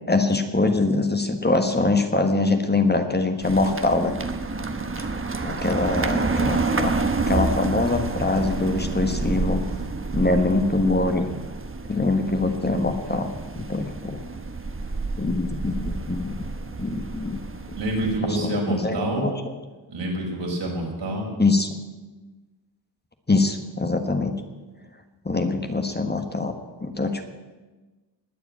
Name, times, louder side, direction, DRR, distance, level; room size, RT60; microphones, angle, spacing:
voice 1, 0.1-4.1 5.0-5.1 5.4-9.6 10.1-11.3 11.9-14.2 15.2-16.3 16.8-17.4 18.3-19.3 21.4-21.7 23.3-24.3 25.2-26.5 26.8-27.2, left 2 dB, 25° left, 6 dB, 1.5 m, -23 dB
sound 1, 3.4-18.2, right 3 dB, 30° right, 1.2 m, -29 dB
voice 2, 17.8-19.2 19.9-21.3, right 1 dB, 75° right, -1 dB, 5.4 m, -27 dB
19.5 x 8.2 x 8.8 m, 1.2 s
wide cardioid pair, 110°, 42 cm